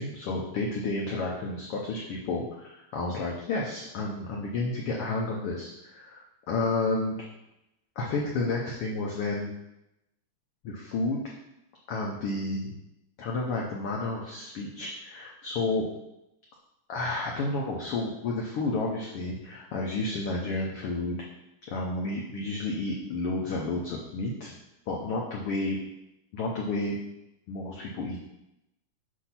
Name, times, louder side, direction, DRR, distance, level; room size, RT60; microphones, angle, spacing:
voice 1, 0.0-7.2 8.0-9.5 10.6-11.3 11.9-12.8 13.2-15.9 16.9-21.2 21.7-24.5 24.9-25.8 26.3-27.0 27.5-28.2, left 2 dB, 80° left, -2 dB, 1.2 m, -31 dB
8.3 x 2.8 x 5.7 m, 0.89 s
omnidirectional pair, 3.7 m